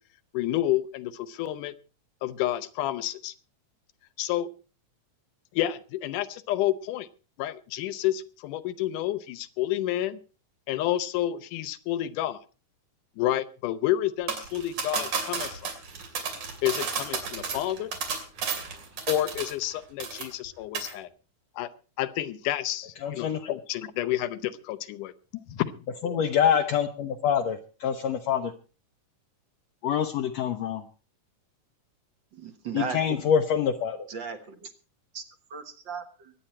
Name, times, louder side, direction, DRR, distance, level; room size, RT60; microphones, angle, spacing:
voice 1, 0.3-1.7 2.2-3.3 4.2-4.5 5.5-7.1 7.4-10.2 10.7-12.4 13.2-15.7 16.6-17.9 19.1-21.1 21.6-21.7 22.0-25.7, left 13 dB, 85° left, 14 dB, 2.4 m, -29 dB
sound 1, 14.3-19.7 20.0-20.5 20.8-20.9, right 5 dB, 75° right, 4.2 m, -32 dB
voice 2, 23.0-23.4 26.0-28.5 29.8-30.8 32.7-34.0, left 8 dB, 70° left, 4 dB, 1.8 m, -25 dB
voice 3, 32.3-33.2 34.1-34.7 35.1-35.2 35.5-36.3, right 5 dB, 50° right, 8 dB, 1.6 m, -36 dB
23.5 x 9.0 x 4.3 m, 0.36 s
omnidirectional pair, 3.6 m